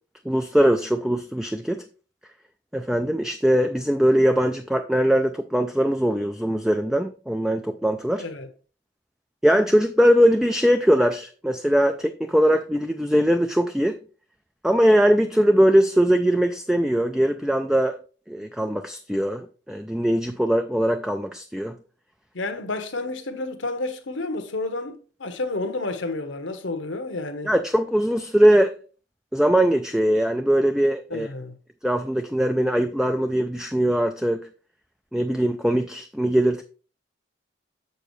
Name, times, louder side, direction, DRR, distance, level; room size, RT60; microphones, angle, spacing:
voice 1, 0.3-1.8 2.7-8.2 9.4-13.9 14.6-18.0 18.3-21.8 27.4-28.7 29.3-31.3 31.8-34.4 35.1-36.6, equal, 5° right, 0.3 m, -21 dB
voice 2, 8.2-8.5 22.3-27.5 31.1-31.6, left 2 dB, 75° left, 1.1 m, -30 dB
7.3 x 6.8 x 3.2 m
head